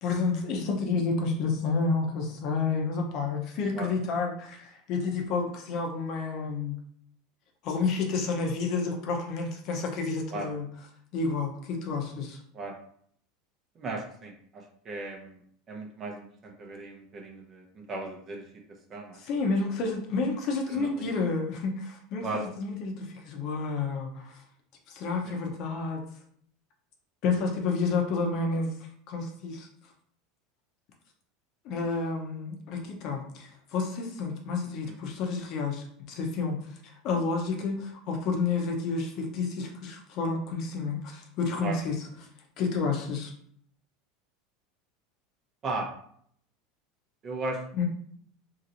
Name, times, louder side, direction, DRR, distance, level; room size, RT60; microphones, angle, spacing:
voice 1, 0.0-6.7 7.6-10.6 11.1-12.4 19.2-24.4 24.9-26.0 27.2-28.7 29.1-29.7 31.6-42.0 42.6-43.3 47.8-47.9, left 4 dB, 50° left, 2 dB, 0.7 m, -30 dB
voice 2, 13.8-15.4 15.7-18.4 18.9-19.2 20.7-21.2 22.2-22.5 25.2-25.4 34.8-35.0 41.6-41.8 45.6-45.9 47.2-47.6, right 2 dB, 35° right, 1 dB, 0.8 m, -36 dB
2.9 x 2.9 x 2.6 m, 0.63 s
supercardioid pair, 125°, 0 cm